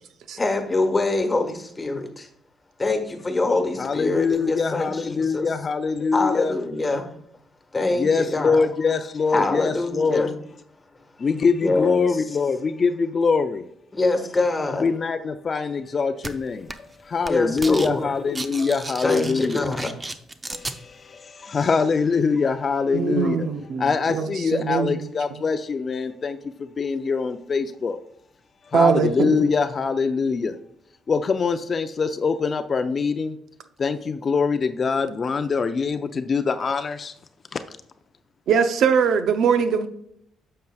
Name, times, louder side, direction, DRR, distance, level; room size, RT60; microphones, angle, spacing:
voice 1, 0.4-2.3 2.8-5.5 6.1-7.1 7.7-8.6 9.3-10.3 11.6-12.1 13.9-14.8 17.2-18.1 19.0-19.9, left 2 dB, 25° left, 1.4 m, -24 dB
voice 2, 3.8-6.5 8.0-10.3 11.2-13.6 14.8-16.7 17.0-19.7 20.5-23.5 23.7-28.0 28.7-30.6 31.1-33.4 33.8-37.1 37.5-37.6, left 5 dB, 45° left, 0.5 m, -24 dB
sound 1, 16.2-16.3 16.7-17.0 17.2-17.9 18.2-20.8, right 2 dB, 20° right, 0.6 m, -33 dB
voice 3, 22.9-25.1 28.7-29.5 38.5-39.9, right 6 dB, 70° right, 0.6 m, -22 dB
9.2 x 6.5 x 2.3 m
supercardioid pair, 70°, 0 cm